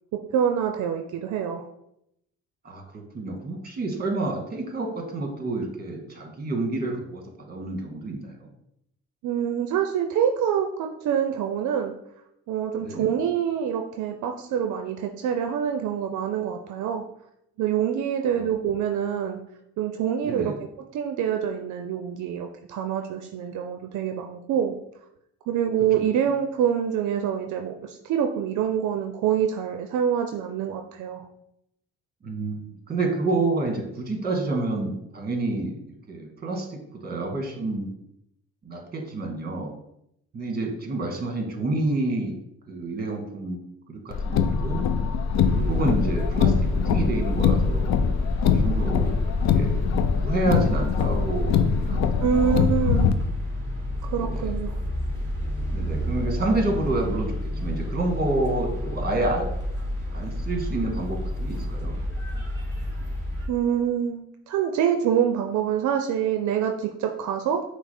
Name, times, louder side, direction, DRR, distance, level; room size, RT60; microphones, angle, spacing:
voice 1, 0.1-1.6 9.2-11.9 12.5-17.1 17.6-19.4 19.8-20.5 20.9-24.8 25.5-31.2 52.2-53.1 54.0-54.8 63.5-67.6, right 8 dB, 75° right, 5 dB, 0.5 m, -26 dB
voice 2, 2.6-8.5 12.8-13.1 18.2-18.5 20.2-20.6 25.9-26.1 32.2-35.8 36.1-37.9 38.6-39.7 40.3-42.4 42.7-44.8 45.5-47.9 48.3-49.8 50.2-52.6 54.2-54.5 55.7-59.5 60.1-61.9, right 2 dB, 30° right, 2 dB, 1.3 m, -29 dB
Car, 44.1-53.1, left 6 dB, 65° left, 0.5 m, -23 dB
sound 1, 45.3-63.5, left 1 dB, 10° left, 1.7 m, -30 dB
5.7 x 2.0 x 4.1 m, 0.78 s
cardioid pair, 90°, 30 cm